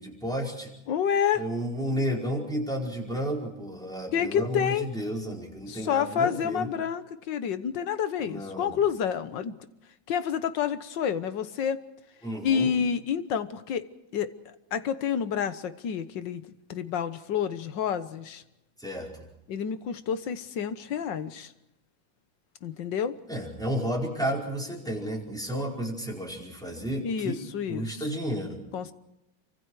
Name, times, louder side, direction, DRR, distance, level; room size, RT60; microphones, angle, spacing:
voice 1, 0.0-0.7 1.3-6.7 8.2-8.8 12.2-12.7 18.8-19.2 23.3-27.4 27.7-28.6, equal, ahead, -2 dB, 4.9 m, -32 dB
voice 2, 0.9-1.4 4.1-4.9 5.7-9.6 10.1-11.8 12.4-13.8 14.1-16.4 16.7-18.4 19.5-21.5 22.6-23.2 27.0-28.0 28.7-28.9, left 8 dB, 70° left, 12 dB, 1.7 m, -29 dB
28.0 x 24.5 x 4.8 m, 0.91 s
omnidirectional pair, 2.1 m